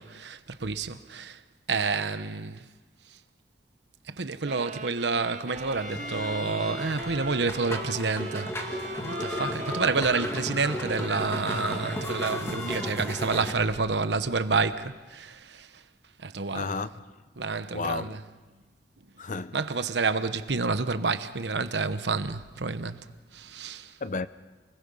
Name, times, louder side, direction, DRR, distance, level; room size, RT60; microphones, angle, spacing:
voice 1, 0.0-1.4 1.7-2.7 4.1-15.7 16.2-16.7 17.4-18.2 19.5-23.0 23.3-23.9, right 4 dB, 80° right, 1.0 m, -29 dB
sound 1, 4.4-12.8, right 2 dB, 45° right, 0.9 m, -40 dB
sound 2, 5.5-13.5, left 1 dB, 15° left, 2.0 m, -35 dB
Bowed string instrument, 5.7-13.0, left 3 dB, 75° left, 4.3 m, -45 dB
voice 2, 16.5-17.1 17.7-18.2 19.2-19.6 24.0-24.3, left 4 dB, 45° left, 0.6 m, -32 dB
28.5 x 21.0 x 5.6 m
head